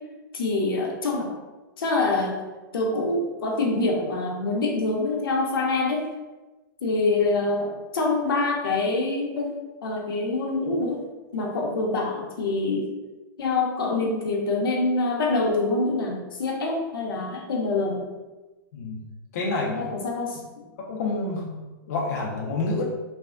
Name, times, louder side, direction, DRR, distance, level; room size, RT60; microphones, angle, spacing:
voice 1, 0.3-1.4 1.8-2.4 2.7-6.1 6.8-9.5 9.8-11.1 11.3-12.9 13.4-18.1 19.7-20.7, left 3 dB, 85° left, 0 dB, 0.7 m, -25 dB
voice 2, 19.3-20.0 20.8-22.8, left 3 dB, 45° left, -3 dB, 0.4 m, -28 dB
3.2 x 2.1 x 2.3 m, 1.2 s
supercardioid pair, 175°, 12 cm